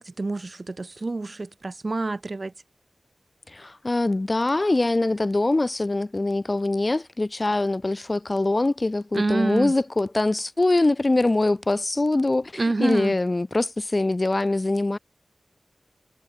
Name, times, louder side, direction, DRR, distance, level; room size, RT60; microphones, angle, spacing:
voice 1, 0.0-2.5 9.1-9.7 12.6-13.2, right 3 dB, 50° right, 1.6 m, -27 dB
voice 2, 3.5-15.0, left 2 dB, 35° left, 0.4 m, -23 dB
wide cardioid pair, 75°, 0 cm